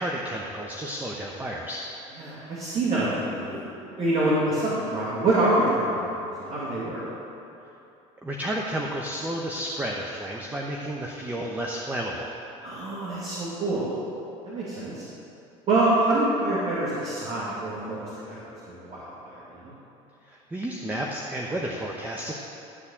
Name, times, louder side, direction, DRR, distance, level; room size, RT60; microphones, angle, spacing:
voice 1, 0.0-1.9 8.2-12.4 20.3-22.3, right 1 dB, 10° right, -1 dB, 0.9 m, -31 dB
voice 2, 2.2-7.0 12.6-13.9 14.4-15.0 15.7-18.0 18.3-18.4 18.7-19.8, right 2 dB, 45° right, -8 dB, 2.5 m, -26 dB
12.5 x 4.2 x 7.2 m, 2.9 s
supercardioid pair, 95°, 15 cm